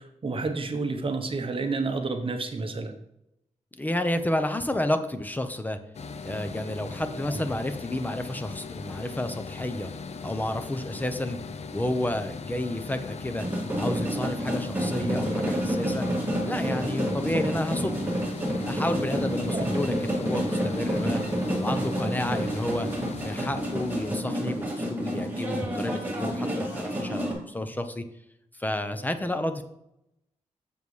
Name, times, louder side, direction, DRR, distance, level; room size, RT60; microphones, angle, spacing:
voice 1, 0.0-2.9 7.3-7.4 19.5-19.6, right 3 dB, 45° right, 6 dB, 0.8 m, -30 dB
voice 2, 3.7-5.8 6.2-9.9 10.2-11.4 11.7-13.5 13.8-16.1 16.4-18.1 18.7-21.2 21.5-22.9 23.2-28.0 28.6-29.6, left 1 dB, 15° left, 8 dB, 0.6 m, -30 dB
sound 1, 5.9-24.2, left 5 dB, 60° left, 0.5 m, -39 dB
sound 2, 13.4-27.3, equal, 15° right, 2.0 m, -29 dB
7.1 x 6.9 x 3.2 m, 0.81 s
wide cardioid pair, 125°, 13 cm